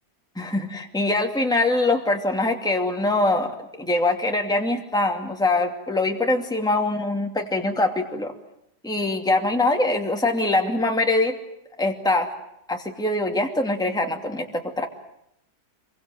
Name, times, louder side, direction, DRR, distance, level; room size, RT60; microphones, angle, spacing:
voice 1, 0.4-8.3 8.8-11.3 11.8-12.3 12.7-14.9, left 2 dB, ahead, 2 dB, 2.5 m, -23 dB
28.5 x 23.5 x 7.8 m, 0.77 s
omnidirectional pair, 1.7 m